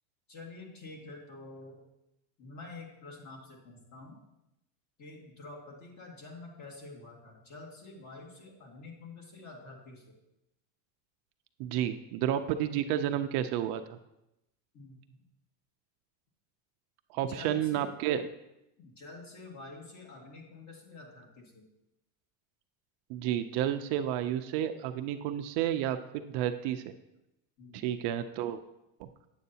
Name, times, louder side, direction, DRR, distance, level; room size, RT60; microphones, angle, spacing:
voice 1, 0.3-1.8 2.4-4.2 5.0-10.2 14.7-15.0 17.3-17.9 18.8-21.6 27.6-27.9, left 3 dB, 35° left, -1 dB, 2.0 m, -48 dB
voice 2, 11.6-14.0 17.1-18.2 23.1-26.9 27.7-28.6 29.0-29.1, right 11 dB, 55° right, 8 dB, 0.5 m, -31 dB
9.1 x 7.9 x 2.8 m, 0.89 s
supercardioid pair, 125°, 49 cm